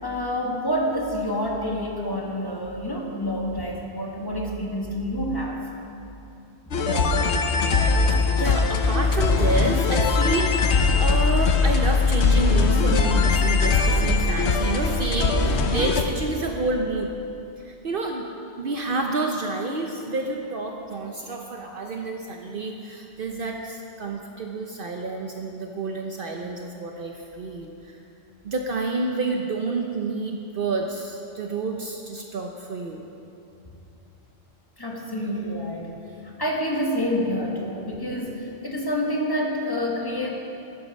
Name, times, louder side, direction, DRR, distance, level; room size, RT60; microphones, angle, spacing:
voice 1, 0.0-5.6 6.7-8.4 34.8-35.9 36.2-40.3, equal, 20° left, -1 dB, 1.6 m, -28 dB
sound 1, 6.7-16.0, left 4 dB, 90° left, 1.1 m, -21 dB
voice 2, 8.3-17.1 17.6-28.0 28.4-33.0, right 3 dB, 60° right, 2 dB, 0.9 m, -29 dB
12.0 x 11.0 x 5.3 m, 2.8 s
omnidirectional pair, 1.1 m